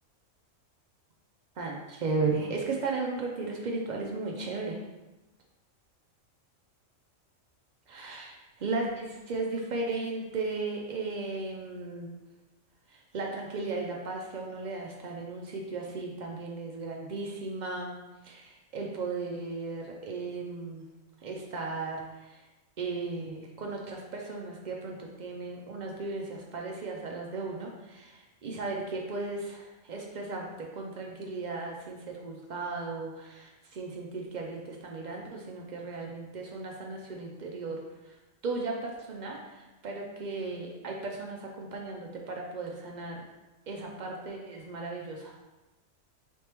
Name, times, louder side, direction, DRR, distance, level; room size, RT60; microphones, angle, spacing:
voice 1, 1.6-4.8 7.9-12.2 12.9-18.0 18.2-20.8 21.2-22.5 22.8-38.2 38.4-43.2 43.7-45.4, right 3 dB, 80° right, 0 dB, 0.4 m, -36 dB
4.2 x 2.9 x 3.3 m, 1.1 s
omnidirectional pair, 1.4 m